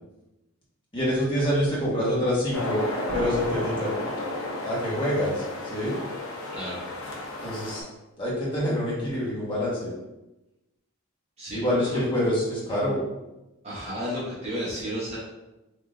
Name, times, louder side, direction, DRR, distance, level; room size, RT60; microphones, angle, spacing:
voice 1, 0.9-2.8 3.1-3.9 4.6-6.0 7.4-7.8 8.2-9.9 11.5-13.0, equal, 20° left, -7 dB, 1.2 m, -26 dB
sound 1, 2.5-7.8, left 2 dB, 65° left, 0.9 m, -33 dB
sound 2, 3.1-4.9, right 2 dB, 65° right, 0.5 m, -40 dB
voice 2, 11.4-12.0 13.6-15.2, equal, 30° right, -9 dB, 0.9 m, -32 dB
3.5 x 2.8 x 3.7 m, 0.99 s
head